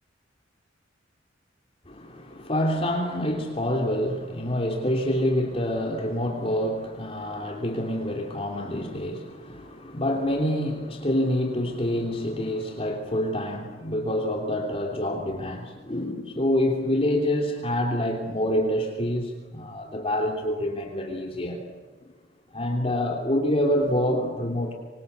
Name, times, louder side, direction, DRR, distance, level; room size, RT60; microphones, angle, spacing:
voice 1, 1.9-21.6 22.0-22.1 22.5-24.7, left 1 dB, 30° left, 1 dB, 3.2 m, -27 dB
26.0 x 26.0 x 8.2 m, 1.5 s
head